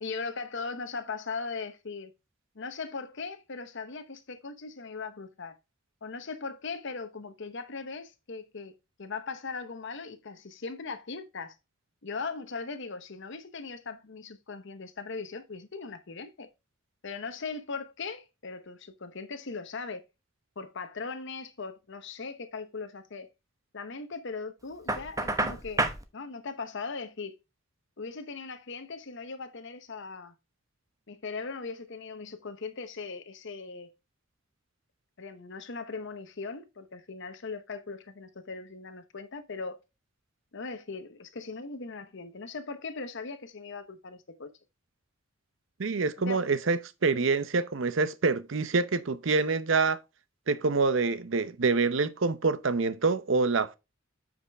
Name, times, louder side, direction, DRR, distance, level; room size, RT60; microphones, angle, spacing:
voice 1, 0.0-2.1 2.6-5.6 6.0-8.7 9.0-11.5 12.0-16.5 17.0-20.0 20.6-23.3 23.7-25.9 26.1-27.4 28.0-30.3 31.1-33.9 35.2-39.8 40.5-44.5 46.2-46.5, left 4 dB, 60° left, 0.9 m, -39 dB
Knock, 24.9-26.0, right 2 dB, 15° right, 1.0 m, -29 dB
voice 2, 45.8-50.0 50.5-53.7, right 4 dB, 65° right, 0.7 m, -26 dB
8.4 x 5.1 x 3.4 m
head